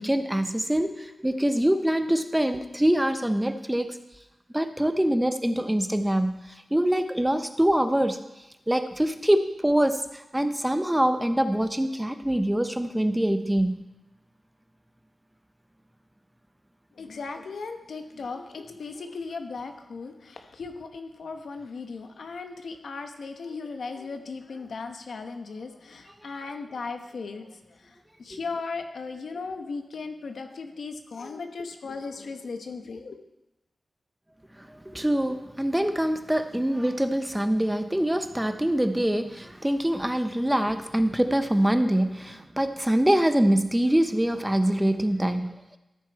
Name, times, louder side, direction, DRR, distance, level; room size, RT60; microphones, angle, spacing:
voice 1, 0.0-4.0 4.5-6.4 6.7-8.2 8.7-10.0 10.3-13.8 34.7-45.5, right 1 dB, 5° right, 9 dB, 0.6 m, -24 dB
voice 2, 16.9-33.2, left 4 dB, 85° left, 6 dB, 1.0 m, -37 dB
14.0 x 6.5 x 4.5 m, 0.94 s
wide cardioid pair, 140°, 0 cm